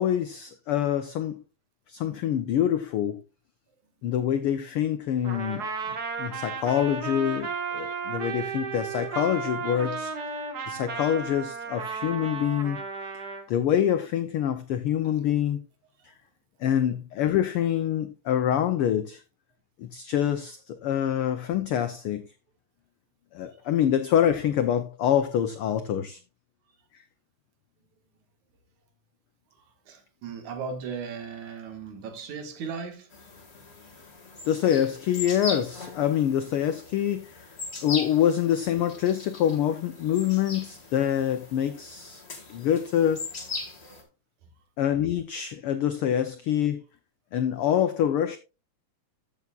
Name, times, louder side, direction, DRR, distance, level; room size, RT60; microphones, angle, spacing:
voice 1, 0.0-1.4 1.9-3.2 4.0-5.7 6.2-10.1 10.7-12.8 13.5-15.6 16.6-19.2 19.8-22.3 23.3-26.2 34.4-37.4 37.8-42.2 42.5-43.3 44.8-46.8 47.3-48.4, left 10 dB, 80° left, 1.2 m, -26 dB
Trumpet, 5.2-13.4, right 5 dB, 45° right, 1.5 m, -34 dB
voice 2, 29.5-33.1 46.1-46.2, right 5 dB, 85° right, 3.1 m, -37 dB
sound 1, 33.1-44.0, left 3 dB, 25° left, 1.9 m, -39 dB
14.5 x 7.1 x 2.4 m
omnidirectional pair, 3.3 m